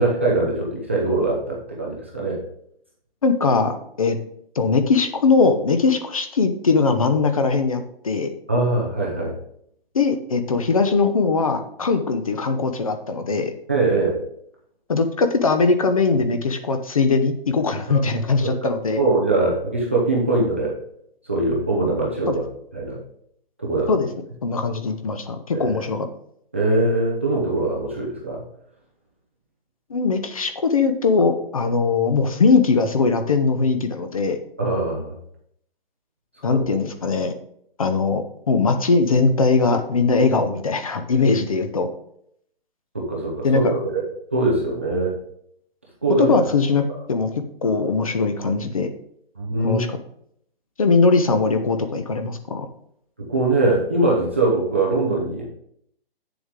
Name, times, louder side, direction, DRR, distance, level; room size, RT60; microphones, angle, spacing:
voice 1, 0.0-2.4 8.5-9.4 13.7-14.2 17.9-18.1 18.6-18.7 19.0-20.8 21.2-22.5 22.7-23.0 23.6-23.9 25.5-25.7 26.5-28.4 34.6-35.2 36.5-36.6 42.9-44.0 44.3-45.2 46.0-46.3 49.4-49.8 53.2-55.5, right 2 dB, 15° right, -4 dB, 0.5 m, -22 dB
voice 2, 3.2-4.2 4.6-8.3 9.9-13.5 14.9-19.0 22.3-22.4 23.9-24.1 24.4-26.1 29.9-34.4 36.4-37.3 37.8-41.9 43.4-43.7 46.2-46.8 47.1-47.3 47.6-48.9 49.6-50.0 50.8-52.7, left 4 dB, 35° left, 8 dB, 0.7 m, -20 dB
8.9 x 7.0 x 3.6 m, 0.70 s
hypercardioid pair, 180°, 30 cm